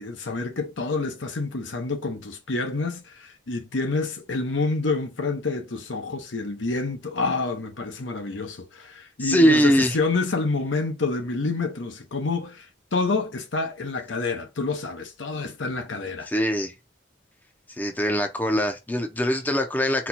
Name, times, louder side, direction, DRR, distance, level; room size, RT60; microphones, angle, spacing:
voice 1, 0.0-16.3, left 3 dB, 80° left, 0.9 m, -28 dB
voice 2, 9.2-10.0 16.3-16.7 17.7-20.1, equal, 10° left, 0.5 m, -22 dB
4.4 x 2.2 x 4.2 m
head